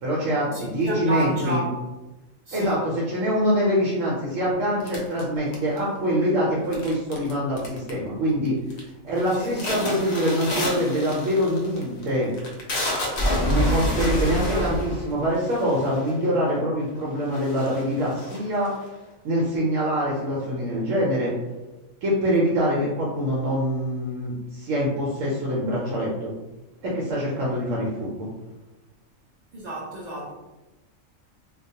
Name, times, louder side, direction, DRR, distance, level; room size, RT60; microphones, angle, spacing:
voice 1, 0.0-1.6 2.5-8.6 9.0-12.3 13.5-18.7 19.2-21.3 22.0-26.3 26.8-28.3, equal, 75° right, -5 dB, 1.0 m, -24 dB
voice 2, 0.5-1.7 2.5-2.8 9.4-9.5 13.6-14.9 29.5-30.3, right 1 dB, 60° right, -4 dB, 0.4 m, -31 dB
sound 1, 4.9-6.0 6.7-7.3 7.6-8.1 8.5-8.8 9.2-16.2 16.9-17.0 17.3-18.9, equal, 70° left, 0.4 m, -28 dB
2.4 x 2.2 x 2.7 m, 1.1 s
omnidirectional pair, 1.4 m